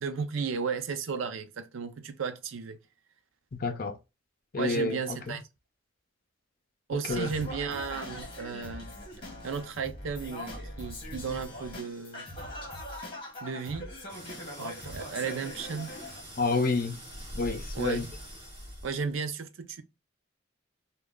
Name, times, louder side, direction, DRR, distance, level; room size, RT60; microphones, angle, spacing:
voice 1, 0.0-2.8 4.6-5.4 6.9-8.9 9.4-12.3 13.4-13.9 14.6-15.9 17.7-18.1 18.8-19.8, right 5 dB, 80° right, 0.5 m, -34 dB
voice 2, 3.5-4.0 4.5-5.4 6.9-7.3 16.4-17.0 17.3-18.0, left 3 dB, 45° left, 0.5 m, -29 dB
Singing, 7.1-16.2, left 1 dB, 25° left, 1.2 m, -41 dB
sound 1, 14.1-19.1, equal, 30° right, 2.2 m, -44 dB
3.1 x 2.3 x 3.6 m
head